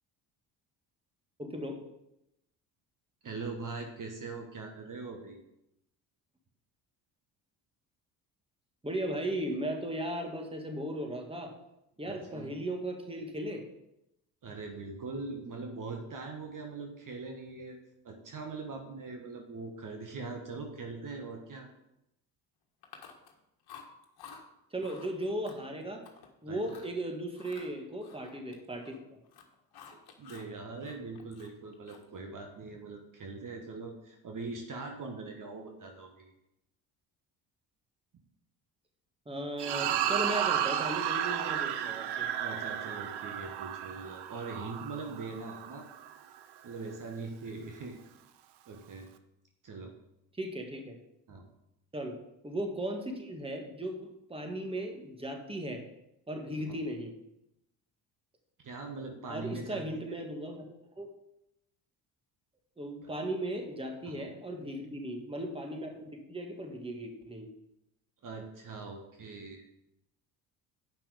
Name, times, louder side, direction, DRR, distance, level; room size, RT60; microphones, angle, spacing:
voice 1, 1.4-1.8 8.8-11.5 12.0-13.6 24.7-26.0 26.4-29.2 39.3-42.3 50.3-51.0 51.9-52.2 52.4-55.8 56.3-57.1 59.3-60.6 61.0-61.1 62.8-67.5, right 1 dB, 10° right, 3 dB, 1.8 m, -37 dB
voice 2, 3.2-5.4 12.0-12.5 14.4-17.8 18.0-21.7 26.5-26.8 29.9-36.3 42.4-45.9 46.6-48.0 48.7-49.1 49.6-49.9 51.3-51.4 56.7-56.8 58.6-60.0 63.0-63.1 64.0-64.3 68.2-69.8, right 3 dB, 45° right, 3 dB, 1.5 m, -42 dB
Chewing mastication, 22.8-23.4 23.7-24.4 24.8-25.1 25.4-26.3 26.6-26.9 27.3-29.0 29.2-30.5 30.8-32.2, left 6 dB, 55° left, 1.6 m, -52 dB
sound 1, 39.6-46.1, right 10 dB, 60° right, 0.8 m, -33 dB
9.0 x 5.6 x 5.1 m, 0.86 s
hypercardioid pair, 65°, 45 cm